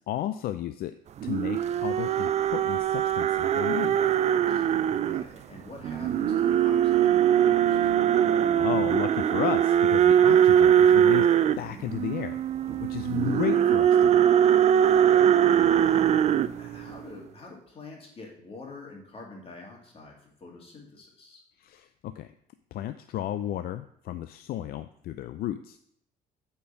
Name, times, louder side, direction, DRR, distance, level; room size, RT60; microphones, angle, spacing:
voice 1, 0.1-1.0 1.2-4.0 8.2-11.3 11.6-12.4 12.8-14.4 21.6-22.3 22.7-25.8, left 12 dB, 65° left, 10 dB, 0.4 m, -33 dB
sound 1, 1.2-5.2 5.8-17.0, right 9 dB, 40° right, 0.4 m, -22 dB
voice 2, 4.3-8.0 12.6-12.9 14.8-21.4, left 3 dB, 35° left, -1 dB, 2.5 m, -46 dB
8.4 x 4.5 x 5.7 m, 0.72 s
cardioid pair, 110°, 17 cm